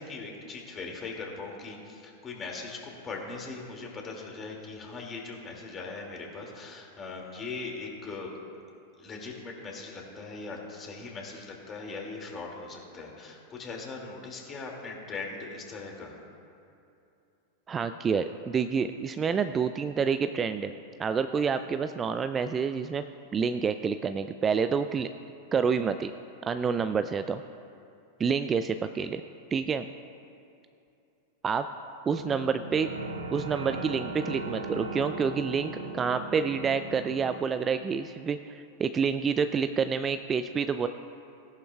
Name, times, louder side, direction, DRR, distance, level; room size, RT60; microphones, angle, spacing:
voice 1, 0.0-8.3 9.0-16.2, left 3 dB, 25° left, 0 dB, 2.4 m, -40 dB
voice 2, 17.7-20.7 21.0-23.0 23.3-25.1 25.5-26.1 26.5-27.4 28.2-29.2 29.5-29.9 31.4-31.7 32.1-32.9 33.3-40.9, right 6 dB, 25° right, 10 dB, 0.4 m, -28 dB
sound 1, 32.1-37.3, right 2 dB, 85° right, 1.0 m, -38 dB
17.5 x 11.0 x 2.4 m, 2.7 s
figure-of-eight pair, 95°, 0 cm